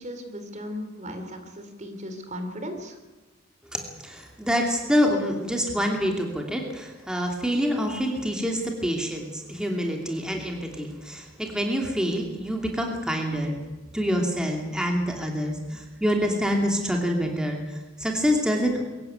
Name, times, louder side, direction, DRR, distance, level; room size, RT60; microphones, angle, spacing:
voice 1, 0.0-3.0, equal, 35° right, 7 dB, 3.4 m, -36 dB
voice 2, 3.7-13.5 13.9-18.8, equal, 5° right, 1 dB, 2.8 m, -26 dB
23.5 x 15.5 x 9.3 m, 1.2 s
head